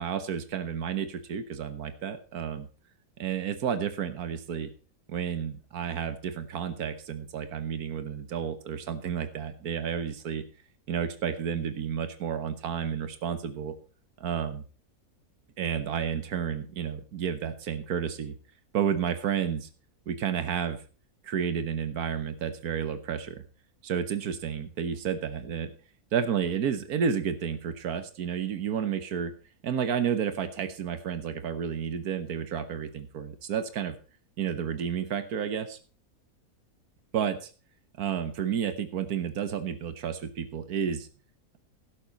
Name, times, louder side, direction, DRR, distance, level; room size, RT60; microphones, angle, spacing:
voice 1, 0.0-2.7 3.2-4.7 5.1-10.4 10.9-13.7 14.2-14.6 15.6-18.3 18.7-19.7 20.1-20.8 21.2-23.4 23.8-25.7 26.1-29.3 29.6-34.0 34.4-35.8 37.1-37.5 38.0-41.1, right 8 dB, 85° right, 11 dB, 1.6 m, -31 dB
12.0 x 12.0 x 4.1 m, 0.37 s
omnidirectional pair, 1.5 m